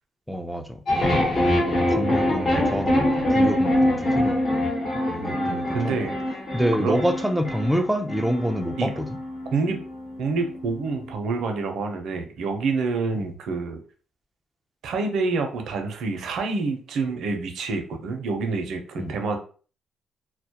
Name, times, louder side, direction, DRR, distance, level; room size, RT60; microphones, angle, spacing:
voice 1, 0.3-0.8 1.9-4.7 5.1-6.0 6.5-9.1 13.2-13.3 19.0-19.1, equal, ahead, 0.4 m, -27 dB
sound 1, 0.9-11.1, left 1 dB, 50° left, 1.0 m, -24 dB
voice 2, 1.4-1.8 5.2-6.2 6.8-7.0 8.8-8.9 9.5-9.8 10.2-13.8 14.8-19.4, right 4 dB, 75° right, 0.5 m, -27 dB
2.2 x 2.0 x 2.8 m
cardioid pair, 90°, 0 cm